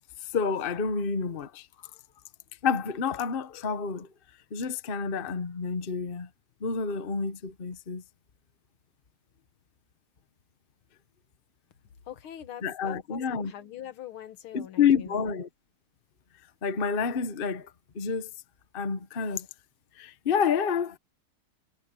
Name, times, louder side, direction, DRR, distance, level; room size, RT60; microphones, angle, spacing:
voice 1, 0.3-1.7 2.6-4.1 4.5-6.3 6.6-8.0 12.6-13.5 14.5-15.5 16.6-17.7 17.9-18.3 18.7-19.5 20.0-21.0, left 6 dB, 35° left, 0.9 m, -28 dB
voice 2, 12.1-15.4, left 11 dB, 80° left, 2.0 m, -43 dB
omnidirectional pair, 2.3 m